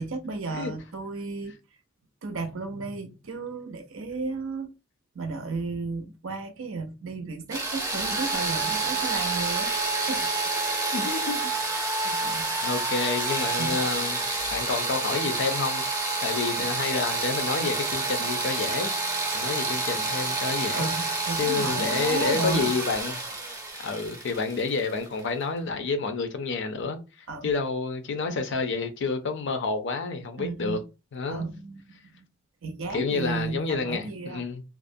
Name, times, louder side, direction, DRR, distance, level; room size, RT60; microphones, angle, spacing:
voice 1, 0.0-1.6 2.2-4.7 5.1-9.7 10.1-10.3 12.2-12.5 13.6-13.8 20.7-22.7 27.3-27.5 30.4-30.8 31.3-32.3 32.6-34.4, right 3 dB, 70° right, 0.5 m, -34 dB
sound 1, 7.5-25.2, right 3 dB, 15° right, 0.6 m, -28 dB
voice 2, 10.9-11.4 12.0-12.1 12.6-14.2 14.5-15.8 16.2-18.9 19.3-20.9 21.4-23.4 23.8-27.0 27.4-30.8 31.1-31.4 32.9-34.6, left 4 dB, 60° left, 0.5 m, -29 dB
2.4 x 2.1 x 2.5 m
head